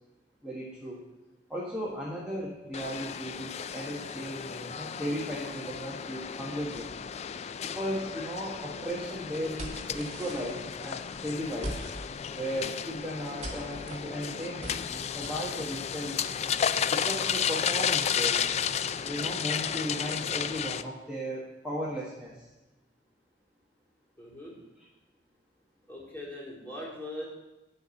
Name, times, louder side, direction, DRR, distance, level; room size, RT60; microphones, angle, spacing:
voice 1, 0.4-1.0 1.5-7.0 7.6-11.8 12.3-16.2 16.9-18.4 19.0-22.4, equal, 5° right, -7 dB, 1.6 m, -36 dB
sound 1, 2.7-20.8, left 8 dB, 35° left, 0.3 m, -33 dB
sound 2, 8.6-15.5, right 1 dB, 40° right, 2.0 m, -44 dB
voice 2, 24.2-24.6 25.9-27.2, left 1 dB, 10° left, -6 dB, 3.7 m, -40 dB
11.5 x 4.8 x 8.5 m, 1.0 s
head